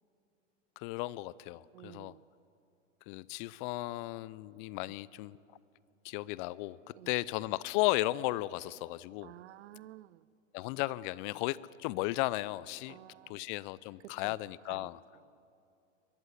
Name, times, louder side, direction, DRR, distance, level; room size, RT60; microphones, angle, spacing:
voice 1, 0.8-2.1 3.1-5.4 6.0-6.8 7.1-9.3 10.5-13.0 13.3-15.0, left 18 dB, 40° left, 21 dB, 0.5 m, -35 dB
voice 2, 1.7-2.2 4.9-5.0 6.9-7.1 9.2-10.3 12.9-13.4 14.0-14.4 14.7-15.4, right 15 dB, 60° right, 21 dB, 0.6 m, -52 dB
22.5 x 14.0 x 9.7 m, 2.5 s
hypercardioid pair, 105°, 38 cm